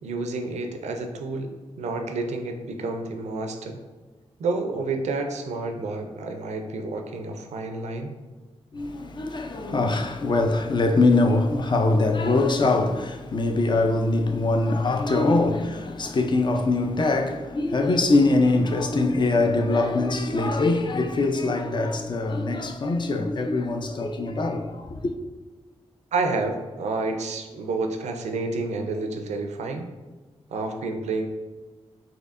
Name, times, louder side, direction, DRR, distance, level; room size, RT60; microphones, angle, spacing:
voice 1, 0.0-3.8 4.4-8.2 26.1-29.9 30.5-31.3, right 3 dB, 90° right, 0.4 m, -29 dB
voice 2, 8.7-25.1, left 2 dB, 40° left, 0.4 m, -23 dB
4.3 x 2.7 x 2.4 m
cardioid pair, 70°, 11 cm